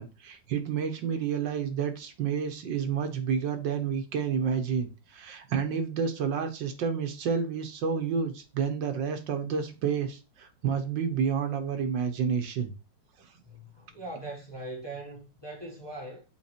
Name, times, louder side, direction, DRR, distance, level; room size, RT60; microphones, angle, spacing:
voice 1, 0.0-12.7, right 6 dB, 80° right, 1.7 m, -30 dB
voice 2, 13.4-16.2, right 2 dB, 15° left, 1.6 m, -41 dB
7.4 x 4.1 x 4.4 m
omnidirectional pair, 2.0 m